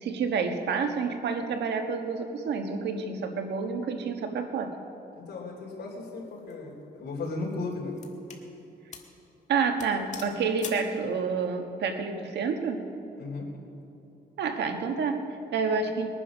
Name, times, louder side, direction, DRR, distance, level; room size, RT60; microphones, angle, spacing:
voice 1, 0.0-4.8 9.5-12.9 14.4-16.1, right 5 dB, 85° right, 5 dB, 1.4 m, -29 dB
voice 2, 5.1-8.0 13.2-13.5, left 3 dB, 70° left, -2 dB, 3.9 m, -36 dB
sound 1, 6.2-6.5 7.2-8.5 8.9-9.2 9.4-9.5 9.8-10.9, left 5 dB, 45° left, 1.7 m, -44 dB
21.0 x 9.8 x 6.2 m, 2.9 s
cardioid pair, 120°, 17 cm